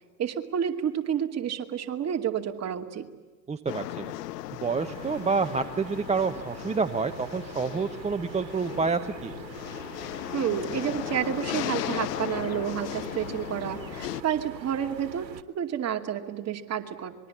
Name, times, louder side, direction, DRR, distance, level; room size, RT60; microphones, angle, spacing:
voice 1, 0.2-3.1 10.3-17.1, right 9 dB, 30° right, 4 dB, 2.5 m, -30 dB
voice 2, 3.5-4.1 4.5-9.4, right 5 dB, 15° right, 8 dB, 0.9 m, -28 dB
sound 1, 3.7-14.2, left 15 dB, 70° left, 0.8 m, -36 dB
sound 2, 4.8-15.4, right 7 dB, 90° right, 1.4 m, -44 dB
26.0 x 21.5 x 8.6 m, 1.3 s
hypercardioid pair, 95°, 50 cm